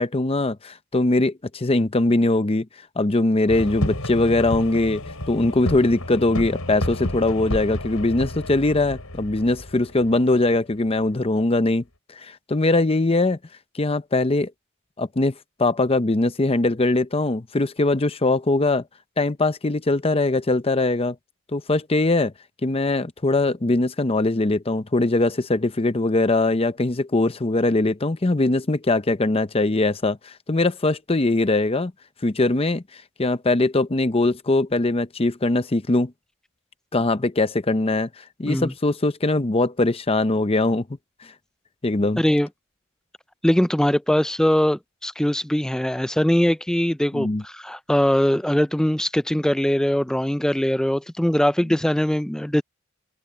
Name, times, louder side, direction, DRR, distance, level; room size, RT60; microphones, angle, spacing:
voice 1, 0.0-2.7 3.0-11.8 12.2-13.4 13.7-14.5 15.0-15.3 15.6-18.8 19.2-21.2 21.5-22.3 22.6-31.9 32.2-32.8 33.2-36.1 36.9-38.1 38.4-40.8 41.8-42.2 47.1-47.4, left 2 dB, 25° left, 0.7 m, -21 dB
sound 1, 3.5-11.0, left 1 dB, 90° left, 6.6 m, -31 dB
voice 2, 42.2-42.5 43.4-52.6, equal, 5° left, 0.3 m, -21 dB
head